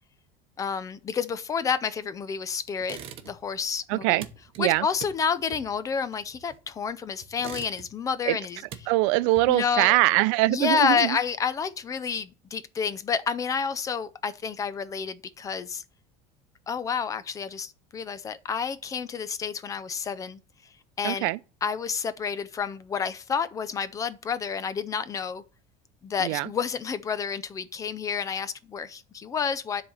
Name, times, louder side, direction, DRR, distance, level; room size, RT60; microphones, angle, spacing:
voice 1, 0.6-4.2 4.6-8.6 9.5-10.0 10.5-15.8 16.7-20.4 21.0-21.3 21.6-25.4 26.0-29.8, left 6 dB, 20° left, 0.5 m, -29 dB
sound 1, 2.8-3.6 3.8-6.8 7.2-8.1 8.4-9.8, right 8 dB, 40° right, 1.0 m, -43 dB
voice 2, 3.9-4.3 4.6-4.9 8.3-8.4 8.9-11.2 21.0-21.4 26.2-26.5, right 19 dB, 80° right, 0.5 m, -23 dB
10.0 x 4.0 x 7.1 m
cardioid pair, 155°, 15 cm